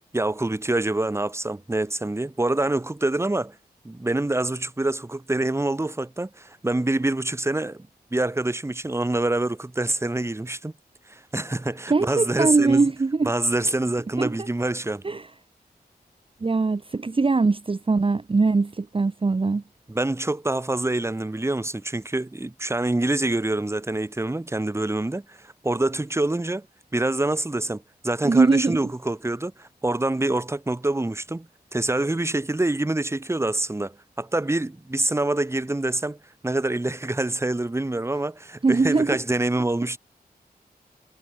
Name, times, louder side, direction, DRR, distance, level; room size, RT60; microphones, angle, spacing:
voice 1, 0.0-3.6 3.8-10.7 11.1-12.8 13.2-15.0 19.9-26.7 26.9-36.2 36.4-40.0, right 2 dB, 15° right, 1.1 m, -26 dB
voice 2, 11.9-13.3 14.2-14.3 15.0-15.3 16.4-19.6 28.2-28.8 38.6-39.2, right 3 dB, 30° right, 0.8 m, -21 dB
wide cardioid pair, 70°, 17 cm